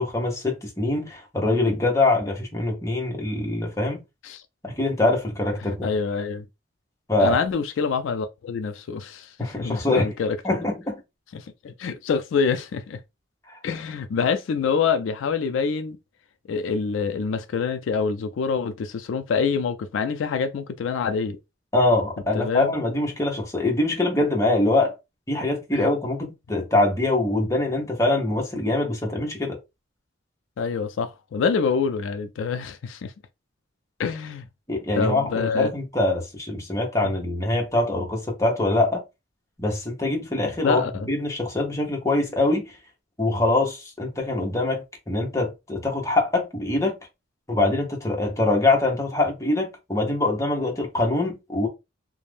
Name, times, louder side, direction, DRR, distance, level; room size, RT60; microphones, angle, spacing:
voice 1, 0.0-4.0 4.6-5.9 7.1-7.4 9.4-10.1 10.4-11.0 21.7-25.0 25.3-29.6 34.7-39.0 39.6-40.8 41.1-42.8 43.2-47.0 47.5-51.7, left 2 dB, 15° left, 0.8 m, -23 dB
voice 2, 5.6-6.5 7.2-10.4 11.3-13.0 13.6-16.0 16.5-21.4 22.3-22.7 25.7-25.9 30.6-33.1 34.0-34.5 34.9-35.7 40.6-41.1, left 5 dB, 80° left, 0.3 m, -26 dB
2.5 x 2.1 x 3.2 m
head